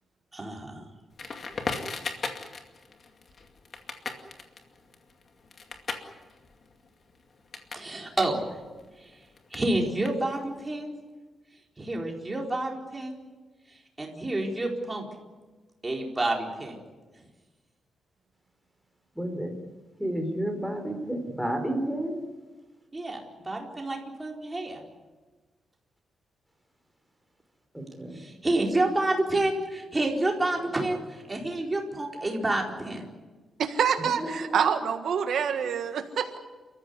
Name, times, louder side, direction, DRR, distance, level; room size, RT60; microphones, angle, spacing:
voice 1, 0.3-0.9 7.7-8.4 9.5-10.9 11.8-13.2 14.0-15.1 15.8-16.8 22.9-24.8 28.1-33.1, right 2 dB, 15° right, 0 dB, 4.4 m, -29 dB
Crackle, 1.2-7.9 8.2-10.6, left 4 dB, 40° left, 2.3 m, -38 dB
voice 2, 19.2-19.5 20.0-22.2 27.7-28.2 34.2-34.6, right 1 dB, ahead, 3 dB, 4.0 m, -31 dB
voice 3, 33.6-36.4, right 7 dB, 70° right, 6 dB, 1.5 m, -26 dB
30.0 x 14.5 x 9.6 m, 1.3 s
wide cardioid pair, 150°, 0 cm